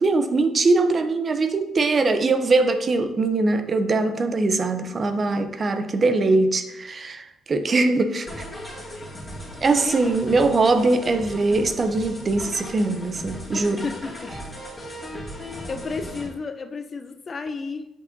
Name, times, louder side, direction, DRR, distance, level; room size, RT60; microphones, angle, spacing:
voice 1, 0.0-8.3 9.6-13.8, right 3 dB, 40° right, 8 dB, 0.6 m, -21 dB
voice 2, 8.2-9.1 9.8-9.9 13.5-14.3 15.1-15.2 15.7-17.9, left 4 dB, 40° left, 8 dB, 0.5 m, -33 dB
sound 1, 8.3-16.3, equal, 20° left, 2.1 m, -37 dB
7.2 x 5.3 x 2.6 m, 0.92 s
cardioid pair, 90°, 0 cm